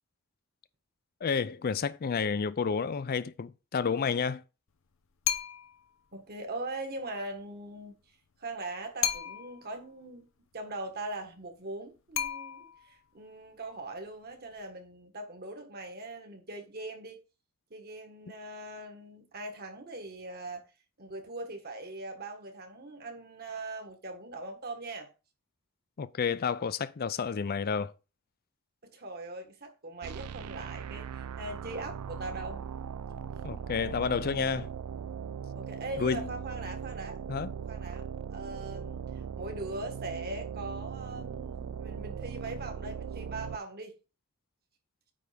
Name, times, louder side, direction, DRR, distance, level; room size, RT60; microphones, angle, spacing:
voice 1, 1.2-4.4 26.0-27.9 33.4-34.7 36.0-36.3 37.3-37.5, left 6 dB, 40° left, 0.4 m, -30 dB
sound 1, 5.2-5.9 9.0-9.7 12.1-12.9, left 10 dB, 60° left, 0.8 m, -33 dB
voice 2, 6.1-8.0 8.4-10.3 10.5-17.2 17.7-20.6 21.0-25.1 28.8-32.7 33.5-33.8 35.5-37.2 37.7-43.9, right 2 dB, 45° right, 1.5 m, -41 dB
sound 2, 30.0-43.6, right 7 dB, 90° right, 0.4 m, -39 dB
9.2 x 3.4 x 5.1 m
head